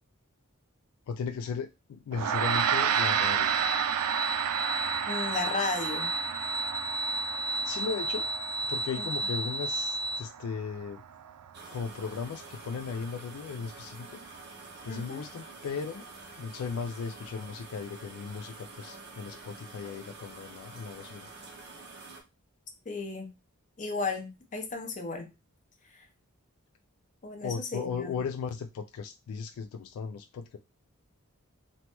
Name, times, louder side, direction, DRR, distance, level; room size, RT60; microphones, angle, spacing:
voice 1, 1.1-3.5 7.5-8.3 8.7-11.0 11.7-14.2 14.8-16.1 16.4-21.3 27.4-30.6, left 5 dB, 75° left, 8 dB, 0.3 m, -36 dB
Gong, 2.1-11.7, right 9 dB, 85° right, 0.3 m, -32 dB
sound 1, 2.3-10.2, right 2 dB, 20° right, 0.4 m, -33 dB
voice 2, 5.1-6.1 8.9-9.1 14.9-15.2 22.9-23.3 23.8-25.3 25.9-26.0 27.2-28.2, left 4 dB, 35° left, 3 dB, 0.6 m, -34 dB
sound 2, 11.5-22.2, right 3 dB, 50° right, 0.7 m, -47 dB
3.1 x 2.2 x 2.9 m, 0.25 s
head